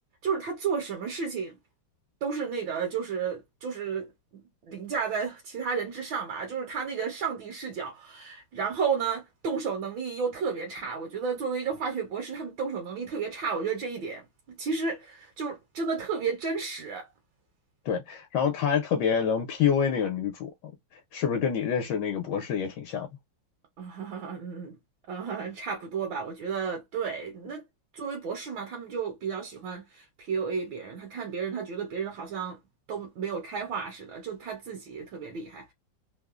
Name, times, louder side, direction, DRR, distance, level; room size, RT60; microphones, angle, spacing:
voice 1, 0.2-1.6 2.2-4.1 4.3-17.1 23.8-24.8 25.1-27.6 27.9-32.6 32.9-35.7, right 6 dB, 75° right, 1.5 m, -32 dB
voice 2, 17.8-20.5 21.1-23.1, left 7 dB, 75° left, 1.3 m, -27 dB
3.5 x 2.0 x 2.4 m
omnidirectional pair, 2.1 m